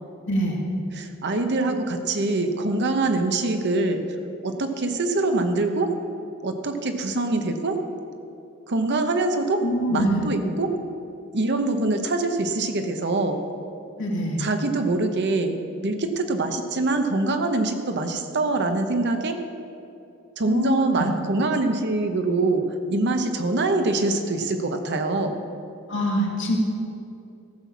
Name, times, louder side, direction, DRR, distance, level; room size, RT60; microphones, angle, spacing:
voice 1, 0.3-0.6 9.6-10.2 14.0-14.4 20.5-21.1 25.9-26.6, equal, 60° left, -1 dB, 2.1 m, -24 dB
voice 2, 0.9-4.0 4.4-5.9 6.4-7.8 8.7-9.6 9.9-10.8 11.3-13.4 14.4-19.4 20.4-25.4, right 2 dB, 55° right, 6 dB, 0.9 m, -24 dB
14.0 x 5.9 x 7.2 m, 2.7 s
head